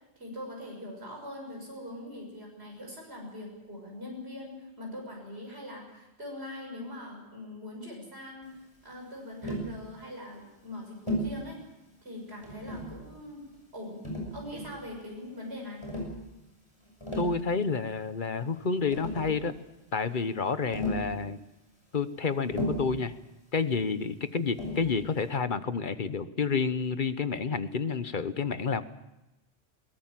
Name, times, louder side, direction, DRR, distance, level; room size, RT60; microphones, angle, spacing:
voice 1, 0.2-8.5 8.8-11.6 12.0-13.4 13.7-14.0 14.3-15.8, left 1 dB, 65° right, 0 dB, 6.8 m, -42 dB
Tap, 9.4-9.7 11.1-11.4 12.4-13.0 14.0-14.8 15.8-16.2 16.9-17.4 18.6-18.7 18.9-19.4 20.7-21.1 22.5-23.0 24.6-24.9, equal, 25° left, 6.4 m, -34 dB
voice 2, 17.2-19.5 19.9-21.4 21.9-23.1 23.5-28.8, left 5 dB, 50° left, 12 dB, 1.1 m, -29 dB
22.0 x 18.5 x 7.5 m, 0.97 s
omnidirectional pair, 1.2 m